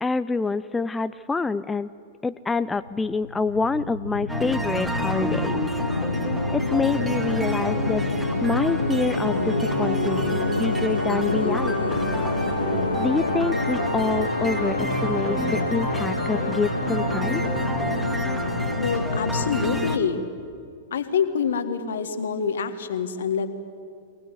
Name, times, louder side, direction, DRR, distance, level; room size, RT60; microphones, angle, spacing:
voice 1, 0.0-1.9 2.2-5.6 6.5-8.0 8.4-12.0 13.0-17.4, left 3 dB, 10° left, 12 dB, 0.5 m, -27 dB
sound 1, 2.9-20.0, left 2 dB, 90° left, 0.5 m, -27 dB
sound 2, 4.3-20.0, right 1 dB, 10° right, 2.3 m, -30 dB
voice 2, 18.7-20.2 20.9-23.5, left 6 dB, 70° left, 9 dB, 1.7 m, -26 dB
24.0 x 19.0 x 8.3 m, 2.5 s
figure-of-eight pair, 100°, 0 cm